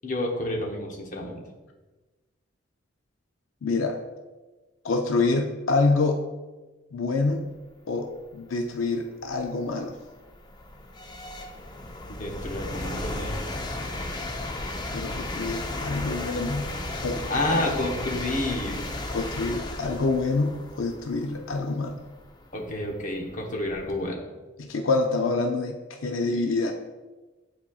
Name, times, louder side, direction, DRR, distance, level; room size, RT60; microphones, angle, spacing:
voice 1, 0.0-1.4 12.2-13.4 17.3-18.8 22.5-24.2, left 1 dB, 40° left, 0 dB, 1.0 m, -29 dB
voice 2, 3.6-4.0 4.8-6.2 6.9-7.5 7.9-10.0 14.9-17.7 19.1-22.1 24.6-26.7, left 3 dB, 85° left, 3 dB, 0.5 m, -27 dB
sound 1, 8.6-8.7 9.3-24.0, left 2 dB, 20° left, 0.5 m, -35 dB
9.9 x 4.1 x 2.4 m, 1.2 s
head